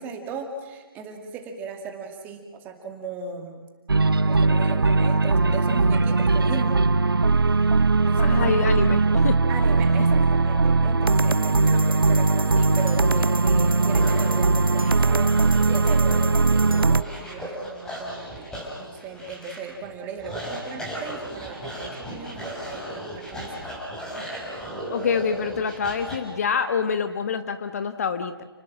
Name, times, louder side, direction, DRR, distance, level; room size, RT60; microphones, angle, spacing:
voice 1, 0.0-3.6 4.3-6.8 8.0-8.7 9.5-18.5 18.8-23.7, right 5 dB, 15° right, 4 dB, 2.5 m, -37 dB
sound 1, 3.9-17.0, right 3 dB, 70° right, 0.8 m, -20 dB
voice 2, 8.2-9.4 24.9-28.4, left 6 dB, 40° left, 9 dB, 1.4 m, -26 dB
sound 2, 11.8-26.2, equal, 5° left, 5.5 m, -36 dB
30.0 x 19.5 x 7.7 m, 1.3 s
figure-of-eight pair, 145°, 12 cm